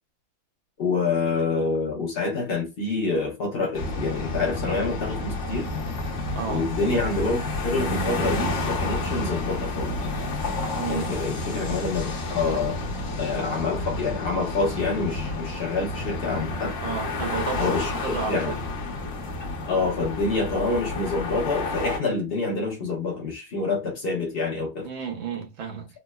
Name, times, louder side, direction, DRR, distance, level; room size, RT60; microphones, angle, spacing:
voice 1, 0.8-5.7 6.5-10.0 10.9-12.8 13.2-16.8 17.6-17.9 18.3-18.5 19.7-24.9, left 3 dB, 75° left, 0.5 m, -27 dB
sound 1, 3.7-22.0, left 2 dB, 50° left, 1.0 m, -30 dB
voice 2, 6.3-6.7 10.8-11.1 16.8-17.7 18.0-18.6 24.8-25.9, right 6 dB, 80° right, 1.6 m, -32 dB
3.7 x 2.1 x 2.3 m
omnidirectional pair, 2.1 m